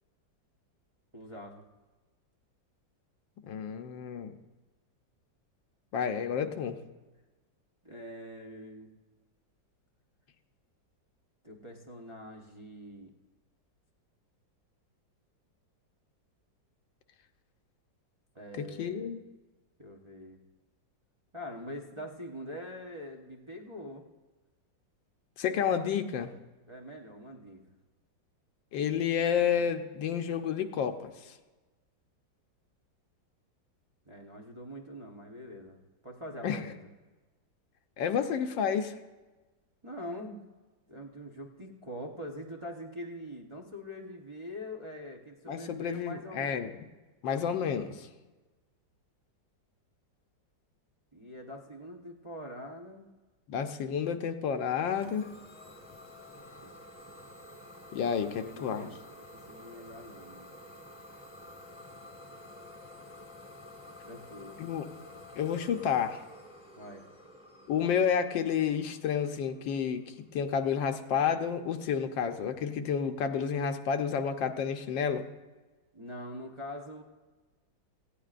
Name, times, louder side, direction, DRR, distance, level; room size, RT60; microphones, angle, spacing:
voice 1, 1.1-1.6 7.8-8.9 11.4-13.1 18.3-19.1 19.8-20.4 21.3-24.0 26.7-27.6 34.1-36.8 39.8-40.5 40.9-46.7 51.1-53.1 56.3-56.8 58.1-59.0 59.3-60.5 64.0-64.6 66.8-67.0 75.9-77.0, equal, 20° right, 0 dB, 0.8 m, -44 dB
voice 2, 3.5-4.4 5.9-6.8 18.5-19.2 25.4-26.3 28.7-31.3 36.4-36.6 38.0-38.9 45.5-46.7 47.2-48.1 53.5-55.3 57.9-58.9 64.6-64.8 65.3-66.2 67.7-75.3, left 7 dB, 80° left, 7 dB, 1.5 m, -30 dB
Idling / Domestic sounds home sounds, 54.8-70.4, left 1 dB, 15° left, 1.1 m, -51 dB
18.5 x 15.0 x 2.5 m, 1.2 s
omnidirectional pair, 2.0 m